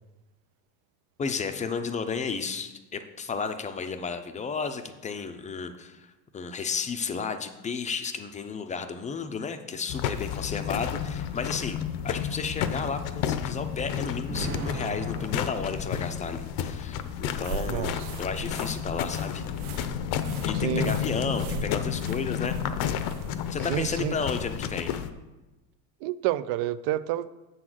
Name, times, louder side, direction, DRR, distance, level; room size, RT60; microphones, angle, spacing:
voice 1, 1.2-6.1 6.3-19.4 20.4-22.6 23.5-24.9, left 5 dB, 15° left, 0.5 m, -33 dB
sound 1, 9.9-25.1, left 9 dB, 60° left, 0.7 m, -31 dB
Explosion, 14.3-16.4, right 4 dB, 40° right, 1.5 m, -38 dB
sound 2, 17.4-23.5, right 5 dB, 80° right, 0.9 m, -41 dB
voice 2, 17.7-18.2 20.5-21.0 23.7-24.2 26.0-27.3, right 13 dB, 60° right, 0.5 m, -29 dB
7.4 x 4.0 x 6.1 m
supercardioid pair, 115°, 44 cm